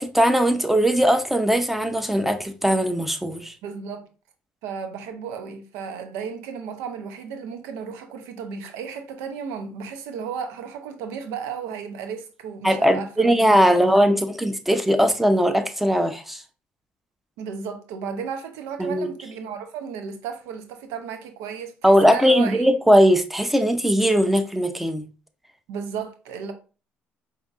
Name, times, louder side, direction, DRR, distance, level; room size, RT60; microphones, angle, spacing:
voice 1, 0.0-3.5 12.6-16.4 18.8-19.1 21.8-25.0, equal, 5° right, 0.7 m, -19 dB
voice 2, 3.6-4.1 4.6-14.2 17.4-22.7 25.7-26.5, right 6 dB, 80° right, 0.6 m, -34 dB
5.1 x 2.7 x 2.4 m
supercardioid pair, 65°, 5 cm